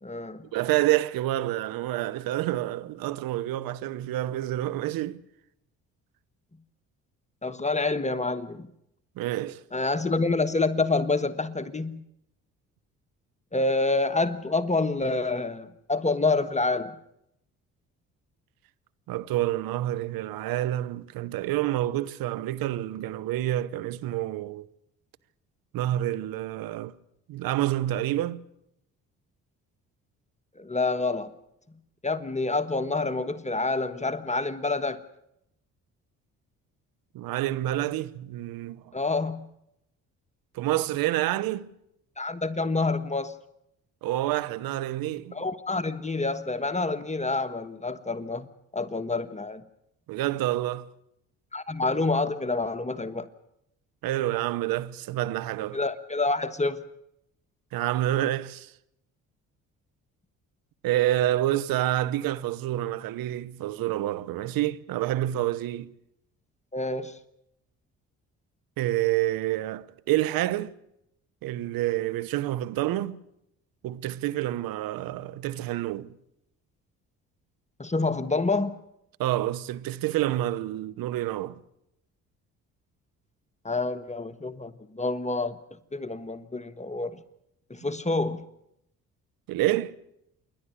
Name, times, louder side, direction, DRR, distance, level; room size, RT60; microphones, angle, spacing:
voice 1, 0.0-0.4 7.4-8.7 9.7-12.0 13.5-17.0 30.6-31.3 32.0-35.0 38.9-39.5 42.2-43.4 45.3-48.5 48.7-49.6 51.5-53.3 55.7-56.8 66.7-67.2 77.8-78.8 83.6-85.6 85.9-87.2 87.7-88.4, left 3 dB, 20° left, 1.3 m, -27 dB
voice 2, 0.5-5.2 9.2-9.6 19.1-24.7 25.7-26.9 27.3-28.4 37.1-38.9 40.5-41.7 44.0-45.4 50.1-50.9 54.0-55.8 57.7-58.7 60.8-65.9 68.8-70.7 71.4-73.2 73.8-76.1 79.2-81.6 89.5-89.9, right 14 dB, 75° right, 1.0 m, -28 dB
27.5 x 11.5 x 9.7 m
supercardioid pair, 60°, 36 cm